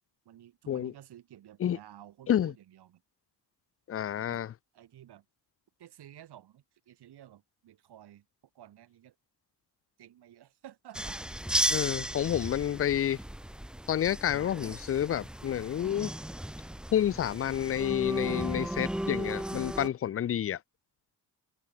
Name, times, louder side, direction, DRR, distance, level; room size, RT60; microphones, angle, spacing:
voice 1, 0.2-3.0 4.2-4.4 4.7-5.2 5.8-8.3 8.5-9.1 10.0-11.2, right 11 dB, 75° right, 4.6 m, -53 dB
voice 2, 3.9-4.5 11.7-13.2 13.9-16.1 16.9-20.6, left 10 dB, 35° left, 0.4 m, -29 dB
sound 1, 10.9-19.9, right 1 dB, ahead, 0.7 m, -35 dB
cardioid pair, 120°, 39 cm